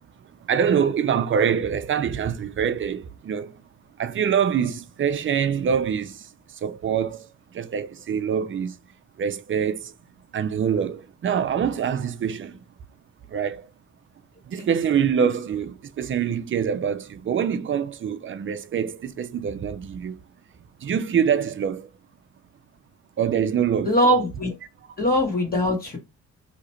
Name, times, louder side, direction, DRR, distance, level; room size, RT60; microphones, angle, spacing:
voice 1, 0.3-3.6 4.0-8.8 9.2-9.9 10.3-12.6 13.3-13.7 14.4-20.2 20.8-21.9 23.2-24.0, right 7 dB, 40° right, 0.5 m, -25 dB
voice 2, 23.8-24.5 25.0-26.0, equal, 30° left, 1.2 m, -21 dB
2.9 x 2.5 x 4.3 m
cardioid pair, 90°, 30 cm